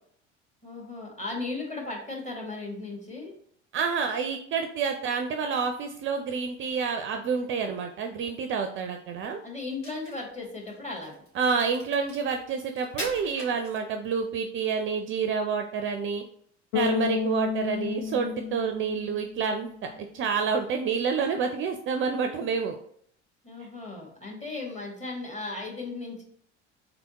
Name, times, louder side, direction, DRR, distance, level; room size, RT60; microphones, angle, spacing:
voice 1, 0.6-3.3 9.4-11.2 23.4-26.2, left 3 dB, 20° left, -1 dB, 1.5 m, -36 dB
voice 2, 3.7-9.4 11.3-16.2 16.7-19.7 20.0-22.8, right 5 dB, 35° right, 6 dB, 0.4 m, -28 dB
Crack, 9.6-14.2, right 1 dB, 85° left, 1.7 m, -42 dB
Bass guitar, 16.7-19.9, left 7 dB, 60° left, 0.8 m, -31 dB
3.8 x 3.4 x 2.8 m, 0.64 s
figure-of-eight pair, 65°, 36 cm